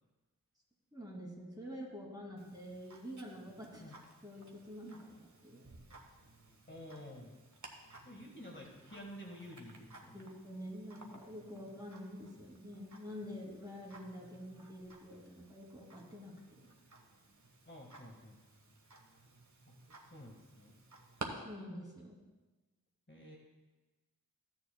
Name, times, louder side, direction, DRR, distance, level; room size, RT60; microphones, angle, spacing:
voice 1, 0.9-3.8 4.2-5.6 10.1-16.3 21.4-22.2, equal, 10° right, -2 dB, 2.6 m, -47 dB
Tick-tock, 2.4-21.3, right 2 dB, 55° right, 1.3 m, -55 dB
voice 2, 3.6-3.9 6.7-7.4 8.0-10.3 17.6-18.4 20.0-20.7 23.1-23.4, equal, 35° left, -1 dB, 1.7 m, -51 dB
15.0 x 9.8 x 2.3 m, 1.2 s
wide cardioid pair, 40°, 35 cm